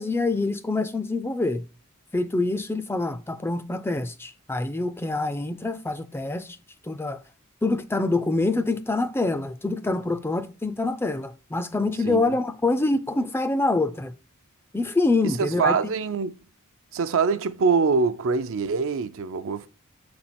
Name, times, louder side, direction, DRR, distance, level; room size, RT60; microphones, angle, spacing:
voice 1, 0.0-1.6 2.1-6.6 6.9-7.2 7.6-14.1 14.7-15.8, left 2 dB, 10° left, 0.4 m, -25 dB
voice 2, 15.2-16.3 16.9-19.7, right 5 dB, 60° right, 0.5 m, -24 dB
7.0 x 4.3 x 4.2 m
head